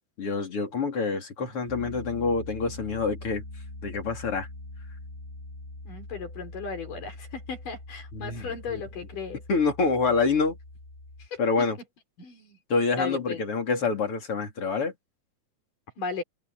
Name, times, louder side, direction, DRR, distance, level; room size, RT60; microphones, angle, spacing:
voice 1, 0.2-3.4 3.8-4.5 8.1-8.8 9.5-10.6 11.4-11.8 12.7-14.9, left 4 dB, 40° left, 4.5 m, -27 dB
Piano, 1.7-11.3, left 2 dB, 20° left, 5.1 m, -43 dB
voice 2, 5.8-9.4 11.2-11.7 12.2-12.6 13.0-13.4 16.0-16.2, left 5 dB, 70° left, 6.7 m, -36 dB
omnidirectional pair, 3.9 m